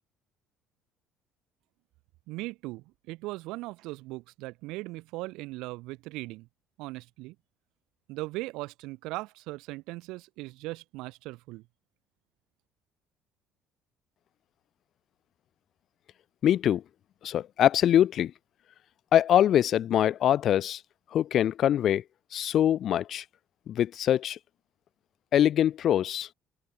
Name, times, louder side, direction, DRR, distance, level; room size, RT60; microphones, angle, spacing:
voice 1, 2.3-6.5 6.8-7.4 8.1-11.6, right 21 dB, 80° right, 5.2 m, -39 dB
voice 2, 16.4-16.8 17.2-18.3 19.1-20.8 21.1-22.0 22.3-23.2 23.7-24.4 25.3-26.3, left 10 dB, 45° left, 1.3 m, -23 dB
cardioid pair, 150°, 0 cm